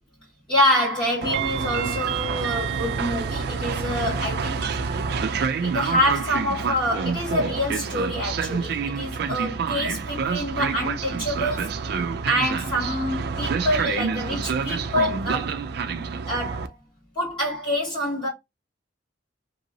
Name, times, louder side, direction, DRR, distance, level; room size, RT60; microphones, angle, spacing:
voice 1, 0.5-4.6 5.6-11.7 12.3-15.6 16.3-16.7 17.2-18.3, left 1 dB, 25° left, 1.8 m, -26 dB
Train, 1.2-16.7, right 5 dB, 55° right, 0.4 m, -27 dB
2.9 x 2.7 x 2.7 m
head